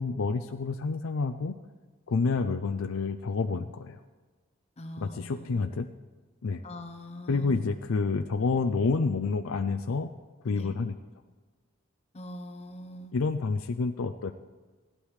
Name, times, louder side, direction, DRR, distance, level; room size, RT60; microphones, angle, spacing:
voice 1, 0.0-1.6 2.1-4.0 5.0-5.9 6.4-6.6 7.3-10.1 10.4-10.9 13.1-14.3, left 4 dB, 85° left, 6 dB, 0.5 m, -28 dB
voice 2, 4.8-5.6 6.6-7.6 10.5-10.8 12.1-13.1, left 1 dB, 30° left, 5 dB, 0.8 m, -42 dB
17.0 x 11.5 x 3.2 m, 1.4 s
head